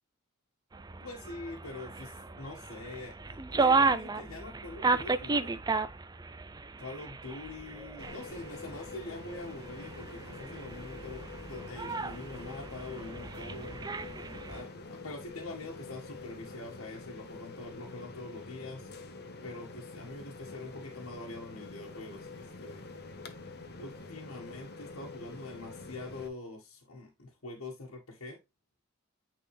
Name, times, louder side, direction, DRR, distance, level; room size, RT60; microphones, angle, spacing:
sound 1, 0.7-14.6, right 4 dB, 20° right, 0.5 m, -34 dB
voice 1, 1.0-5.5 6.8-13.8 14.5-18.9 19.3-22.9 23.8-28.4, left 2 dB, 90° left, 1.6 m, -44 dB
sound 2, 8.0-26.3, left 3 dB, 50° left, 1.1 m, -46 dB
9.2 x 4.2 x 3.2 m
head